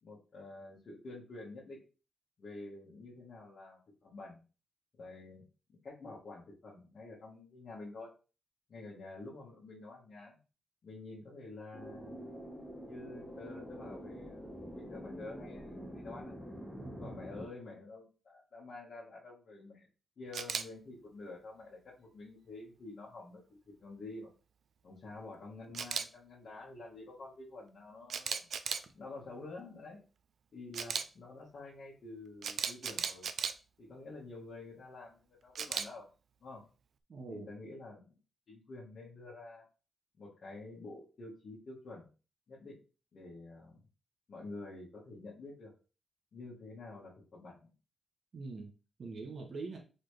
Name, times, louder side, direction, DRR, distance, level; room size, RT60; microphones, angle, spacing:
voice 1, 0.0-1.8 2.4-4.4 4.9-5.5 5.8-8.1 8.7-10.4 10.8-12.3 12.8-16.4 17.0-19.9 20.2-24.3 24.8-28.5 28.9-30.0 30.5-33.3 33.8-36.1 36.4-36.6 37.3-38.2 38.5-39.7 40.2-42.1 42.5-42.8 43.1-43.8 44.3-45.7 46.3-47.7, left 2 dB, 50° left, -8 dB, 1.6 m, -49 dB
sound 1, 11.7-17.5, equal, 10° left, 1.4 m, -46 dB
voice 2, 16.8-17.2 37.1-37.5 48.3-48.7 49.0-49.8, right 3 dB, 45° right, 2 dB, 1.0 m, -43 dB
Camera, 20.3-20.6 25.7-26.0 28.1-28.8 30.7-31.0 32.4-33.5 35.6-35.9, right 6 dB, 65° right, 0.4 m, -35 dB
4.1 x 3.9 x 3.3 m, 0.33 s
wide cardioid pair, 150°, 0 cm